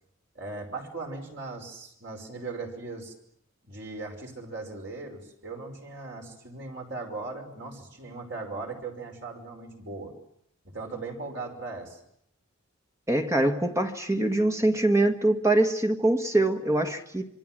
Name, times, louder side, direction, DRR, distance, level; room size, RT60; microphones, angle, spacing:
voice 1, 0.4-3.1 3.6-10.1 10.6-12.0, right 3 dB, 55° right, 2 dB, 5.5 m, -38 dB
voice 2, 13.1-17.3, right 1 dB, 15° right, 6 dB, 1.6 m, -24 dB
27.0 x 24.0 x 7.6 m, 0.70 s
head